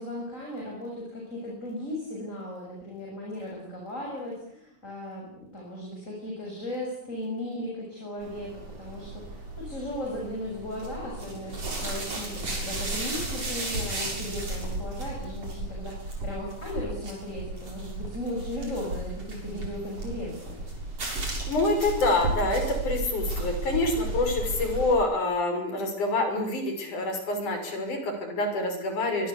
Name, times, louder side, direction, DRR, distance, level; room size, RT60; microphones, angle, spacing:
voice 1, 0.0-20.6, left 1 dB, 20° left, -1 dB, 7.7 m, -36 dB
sound 1, 8.2-24.9, right 2 dB, 50° right, 8.0 m, -34 dB
voice 2, 21.5-29.3, left 2 dB, 80° left, 6 dB, 7.3 m, -27 dB
24.5 x 24.0 x 8.5 m, 0.67 s
omnidirectional pair, 3.5 m